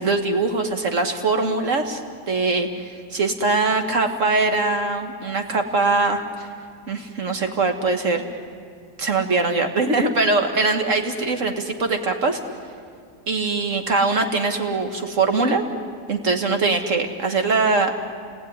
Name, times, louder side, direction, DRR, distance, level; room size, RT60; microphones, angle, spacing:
voice 1, 0.0-2.0 2.3-6.5 6.9-8.2 9.0-12.4 13.3-15.6 16.1-17.9, right 3 dB, 45° right, 5 dB, 2.3 m, -22 dB
29.0 x 19.5 x 9.9 m, 2.2 s
omnidirectional pair, 1.9 m